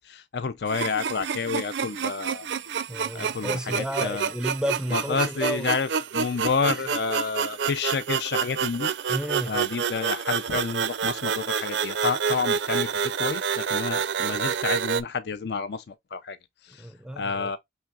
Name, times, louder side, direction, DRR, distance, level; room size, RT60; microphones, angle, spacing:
voice 1, 0.0-2.5 3.1-4.3 4.9-8.9 9.4-16.4 16.6-16.9 17.2-17.6, left 5 dB, 65° left, 0.5 m, -29 dB
sound 1, 0.7-15.0, right 7 dB, 85° right, 0.5 m, -28 dB
voice 2, 2.9-5.8 6.7-6.8 9.1-9.6 14.2-14.3 16.8-17.5, right 1 dB, 5° right, 0.5 m, -32 dB
5.6 x 3.3 x 2.3 m
head